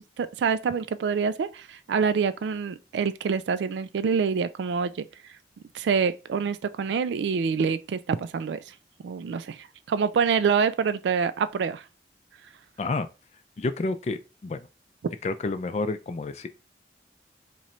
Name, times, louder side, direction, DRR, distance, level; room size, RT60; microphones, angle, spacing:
voice 1, 0.2-5.1 5.7-8.6 9.0-11.8, right 6 dB, 80° right, 0.3 m, -26 dB
voice 2, 13.6-14.7 15.2-16.5, left 3 dB, 35° left, 0.3 m, -29 dB
3.1 x 2.5 x 4.2 m
head